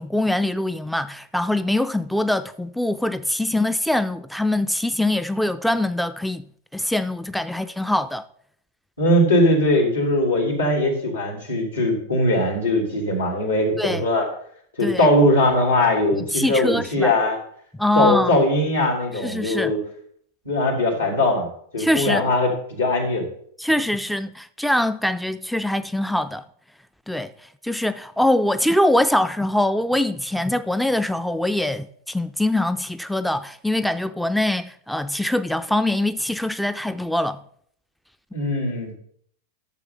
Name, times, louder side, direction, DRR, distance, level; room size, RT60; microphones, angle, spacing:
voice 1, 0.0-6.5 6.7-8.2 13.8-14.1 14.8-15.1 16.1-17.1 17.8-18.4 19.2-19.7 21.8-22.3 23.6-26.4 27.1-27.3 27.6-37.4, left 1 dB, ahead, 0.4 m, -23 dB
voice 2, 9.0-14.3 14.8-17.4 17.9-19.8 20.4-21.5 21.7-23.3 38.3-39.0, left 1 dB, 80° left, 3.3 m, -20 dB
12.0 x 7.1 x 3.9 m
figure-of-eight pair, 90°, 0 cm